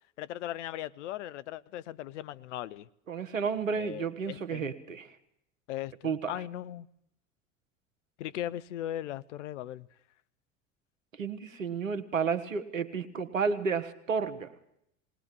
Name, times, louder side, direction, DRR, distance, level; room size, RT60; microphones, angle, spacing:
voice 1, 0.2-2.9 3.8-4.6 5.7-6.9 8.2-9.9, left 12 dB, 65° left, 17 dB, 0.8 m, -38 dB
voice 2, 3.1-5.1 6.0-6.3 11.2-14.5, right 5 dB, 85° right, 10 dB, 1.5 m, -31 dB
20.5 x 18.0 x 7.0 m, 0.76 s
figure-of-eight pair, 75°, 38 cm